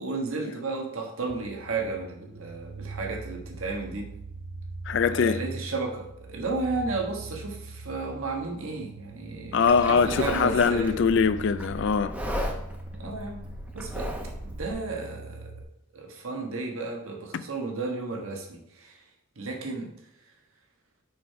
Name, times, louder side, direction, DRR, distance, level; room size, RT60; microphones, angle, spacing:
voice 1, 0.0-4.1 5.1-11.0 13.0-13.4 13.7-14.1 14.4-15.5 15.9-19.0 19.4-19.9, right 3 dB, 90° right, 1.4 m, -33 dB
sound 1, 1.3-15.6, right 2 dB, 50° right, 0.6 m, -42 dB
voice 2, 4.9-5.4 9.5-12.1 17.3-17.4, left 5 dB, 60° left, 0.4 m, -22 dB
Livestock farm animals working animals, 9.7-14.7, equal, 5° right, 0.8 m, -36 dB
6.2 x 5.8 x 4.7 m
head